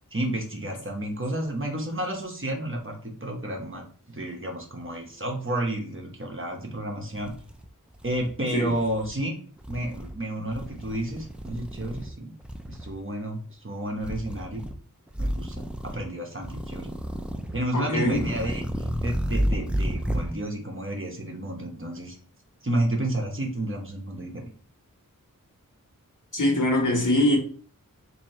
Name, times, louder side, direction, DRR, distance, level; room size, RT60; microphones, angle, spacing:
voice 1, 0.1-3.8 4.1-7.3 8.0-9.3 9.7-12.3 12.7-14.6 15.2-16.9 17.5-22.2 22.6-24.4, right 1 dB, 35° right, 1.0 m, -31 dB
sound 1, 6.7-6.8 7.1-8.3 8.7-9.1 9.6-10.1 10.5-12.1 12.4-12.9 14.0-14.8 15.1-16.0 16.4-17.6 18.0-20.3, equal, 5° right, 0.4 m, -31 dB
voice 2, 17.7-18.2 26.3-27.4, left 1 dB, 65° left, 1.3 m, -22 dB
3.0 x 2.8 x 4.2 m
wide cardioid pair, 40°, 34 cm